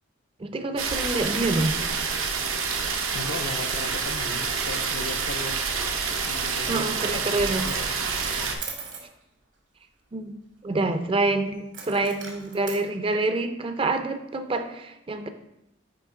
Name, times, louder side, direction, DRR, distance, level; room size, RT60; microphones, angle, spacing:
voice 1, 0.4-1.8 6.7-7.7 10.1-10.4 10.6-15.3, right 2 dB, 25° right, 8 dB, 0.4 m, -27 dB
sound 1, 0.8-8.6, right 5 dB, 90° right, 0.7 m, -28 dB
voice 2, 3.1-5.6 6.1-7.9 8.2-8.5, left 3 dB, 65° left, 8 dB, 0.5 m, -37 dB
Coin (dropping), 7.1-7.3 7.5-9.1 11.7-12.8, right 6 dB, 65° right, 1.1 m, -40 dB
9.3 x 3.1 x 3.6 m, 0.86 s
head